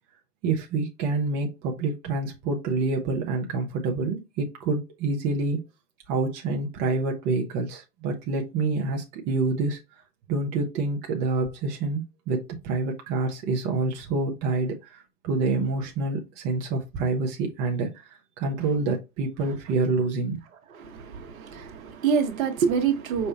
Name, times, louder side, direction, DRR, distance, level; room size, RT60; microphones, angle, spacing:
voice 1, 0.4-5.6 6.1-9.8 10.3-20.4, right 3 dB, 25° right, 0.7 m, -27 dB
voice 2, 20.7-23.3, right 6 dB, 55° right, 1.2 m, -26 dB
5.5 x 2.2 x 4.1 m
hypercardioid pair, 130°, 49 cm